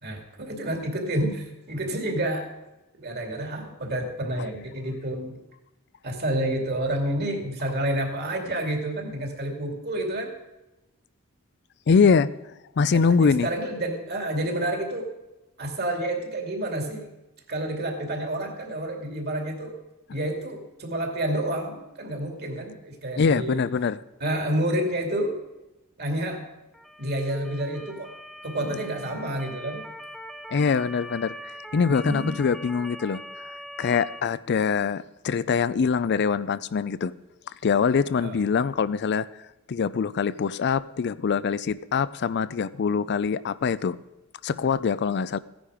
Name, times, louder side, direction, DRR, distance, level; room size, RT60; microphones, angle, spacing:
voice 1, 0.0-2.5 3.0-5.4 6.0-10.3 12.9-15.1 15.6-17.1 17.5-19.8 20.1-23.7 24.2-25.4 26.0-26.5 27.0-28.1 28.4-29.8 32.0-32.4 38.2-38.4, right 1 dB, 50° right, 3 dB, 2.5 m, -29 dB
voice 2, 11.9-12.3 12.8-13.5 23.2-24.0 30.5-37.1 37.6-39.3 39.7-44.0 44.4-45.4, left 5 dB, 55° left, 17 dB, 0.4 m, -24 dB
Motor vehicle (road) / Siren, 26.7-34.2, equal, ahead, 0.7 m, -42 dB
15.5 x 10.5 x 4.9 m, 0.99 s
head